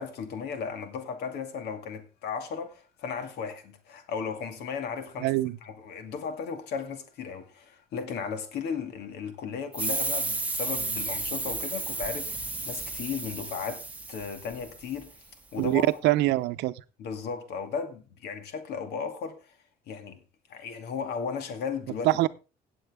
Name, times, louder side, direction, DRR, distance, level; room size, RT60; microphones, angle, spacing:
voice 1, 0.0-5.3 5.6-16.0 17.0-19.6 19.9-20.2 20.5-22.1, left 6 dB, 75° left, 2.3 m, -35 dB
voice 2, 5.2-5.6 15.6-16.7 22.0-22.3, right 17 dB, 85° right, 0.7 m, -24 dB
emptying-gas-bottle, 9.7-15.0, right 2 dB, 10° right, 1.3 m, -33 dB
17.0 x 7.7 x 3.6 m
cardioid pair, 110°, 17 cm